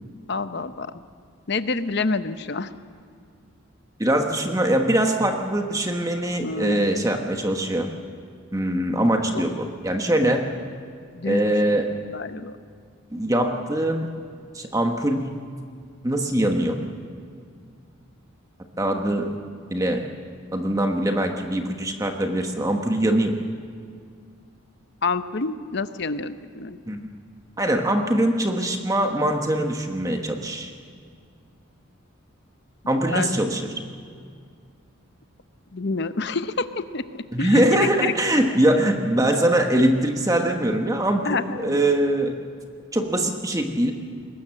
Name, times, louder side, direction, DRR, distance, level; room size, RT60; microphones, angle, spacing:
voice 1, 0.3-0.9 1.5-2.7 6.4-6.9 9.3-9.4 11.1-11.5 12.1-12.6 25.0-26.8 33.1-33.3 35.7-38.1 38.6-38.7 41.2-41.8, left 3 dB, 55° left, 11 dB, 0.8 m, -28 dB
voice 2, 4.0-7.9 8.5-10.5 11.2-11.9 13.1-14.1 14.5-15.4 16.0-16.8 18.8-19.3 19.7-20.0 20.5-23.3 26.9-27.1 27.6-30.7 32.9-33.7 37.3-42.3 42.9-43.9, right 1 dB, 15° right, 4 dB, 1.3 m, -22 dB
21.5 x 19.0 x 7.6 m, 2.2 s
head